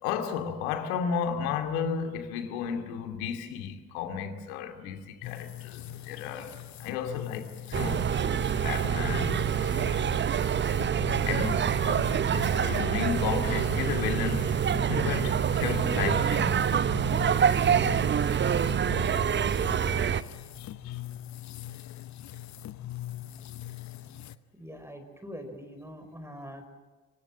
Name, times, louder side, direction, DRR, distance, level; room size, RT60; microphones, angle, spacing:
voice 1, 0.0-10.1 11.2-14.5 14.9-16.8 17.7-18.0 20.6-21.0, left 7 dB, 65° left, 2.7 m, -34 dB
sound 1, 5.2-24.4, left 13 dB, 35° left, 1.0 m, -41 dB
sound 2, 7.7-20.2, right 8 dB, 25° right, 0.8 m, -26 dB
sound 3, 18.2-22.3, right 1 dB, 75° right, 2.9 m, -53 dB
voice 2, 24.6-26.7, equal, 5° right, 4.5 m, -43 dB
27.0 x 25.5 x 7.4 m
figure-of-eight pair, 55°, 46 cm